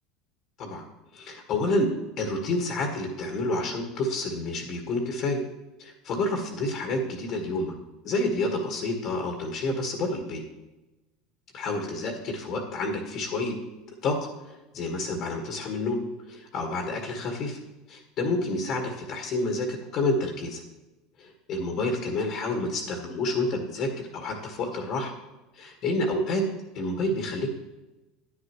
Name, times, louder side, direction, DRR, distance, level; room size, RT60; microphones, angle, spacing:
voice 1, 1.1-5.4 5.8-7.7 8.0-10.4 11.5-13.6 14.0-14.2 14.5-16.0 16.3-17.6 17.9-20.6 21.2-25.1 25.5-26.4 26.7-27.5, left 2 dB, 50° left, 2 dB, 1.7 m, -29 dB
9.9 x 9.7 x 3.1 m, 1.1 s
supercardioid pair, 110°, 0 cm